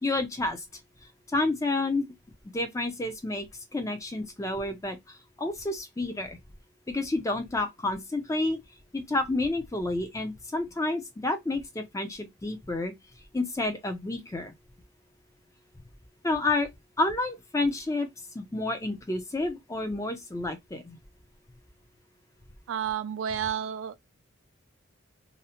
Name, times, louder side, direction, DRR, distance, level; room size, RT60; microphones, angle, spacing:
voice 1, 0.0-0.7 1.3-2.1 2.5-3.5 3.7-6.4 6.9-8.6 8.9-12.9 13.3-14.5 16.2-16.7 17.0-18.1 18.3-21.0, left 2 dB, 15° left, 0.4 m, -30 dB
voice 2, 22.7-24.1, right 8 dB, 70° right, 0.3 m, -31 dB
2.7 x 2.0 x 2.7 m
head